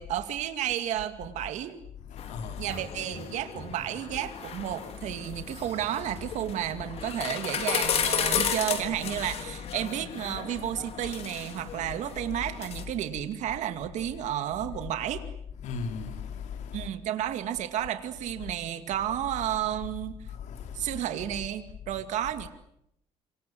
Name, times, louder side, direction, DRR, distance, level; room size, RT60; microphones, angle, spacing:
voice 1, 0.0-1.8 2.6-15.2 16.7-20.1 20.7-22.5, right 11 dB, 80° right, 2.4 m, -32 dB
voice 2, 2.1-2.7 15.6-16.9 20.3-21.0, left 5 dB, 85° left, 3.7 m, -37 dB
sound 1, 2.2-12.8, left 7 dB, 60° left, 4.2 m, -34 dB
27.5 x 26.0 x 7.8 m
cardioid pair, 155°, 12 cm